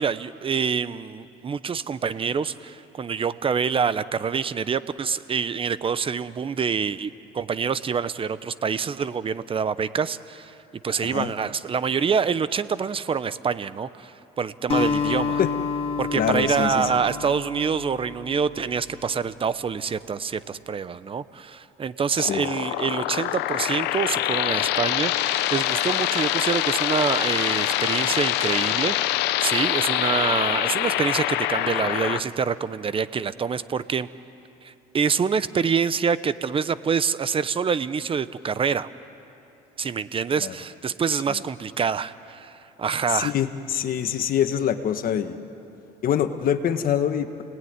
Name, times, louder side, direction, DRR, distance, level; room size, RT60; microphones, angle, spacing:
voice 1, 0.0-10.5 10.8-14.1 14.4-15.4 16.0-28.9 29.4-34.1 34.6-38.9 39.8-43.3, right 6 dB, 30° right, 15 dB, 0.8 m, -26 dB
voice 2, 11.0-11.3 15.4-15.5 16.1-16.9 22.3-22.5 40.4-40.5 43.1-45.4 46.0-47.4, left 9 dB, 60° left, 8 dB, 1.6 m, -25 dB
Acoustic guitar, 14.7-19.2, left 5 dB, 35° left, 2.0 m, -29 dB
sound 1, 22.2-32.2, left 14 dB, 90° left, 0.9 m, -25 dB
30.0 x 19.0 x 9.6 m, 2.9 s
cardioid pair, 110°, 17 cm